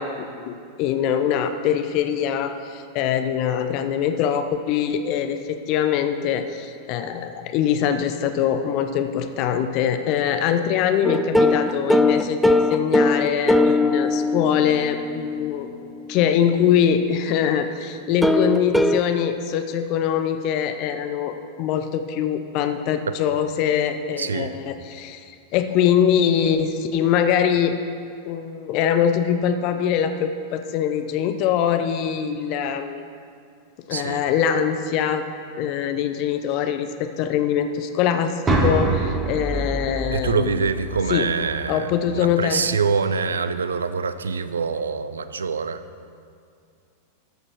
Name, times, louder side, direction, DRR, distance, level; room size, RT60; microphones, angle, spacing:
voice 1, 0.0-15.7 16.1-27.8 28.2-33.0 33.9-35.2 35.6-40.4 41.1-41.3 41.7-42.6, left 8 dB, 40° left, 8 dB, 0.6 m, -23 dB
sound 1, 11.0-16.9 18.2-19.0, left 2 dB, ahead, 0.4 m, -21 dB
voice 2, 24.2-24.6 33.9-34.3 40.1-45.8, right 5 dB, 70° right, 12 dB, 0.4 m, -25 dB
sound 2, 38.5-42.4, right 2 dB, 20° right, 1.3 m, -26 dB
13.0 x 6.7 x 4.6 m, 2.3 s
figure-of-eight pair, 90°, 0 cm